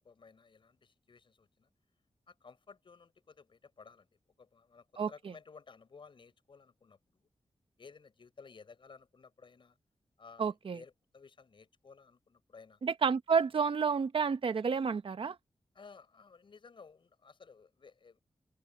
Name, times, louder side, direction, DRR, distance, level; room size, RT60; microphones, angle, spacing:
voice 1, 0.0-1.7 2.3-7.3 7.8-9.8 10.2-12.8 15.7-18.2, left 5 dB, 60° left, 6.5 m, -56 dB
voice 2, 10.4-10.8 12.8-15.4, right 6 dB, 65° right, 1.1 m, -30 dB
open air
wide cardioid pair, 105°, 10 cm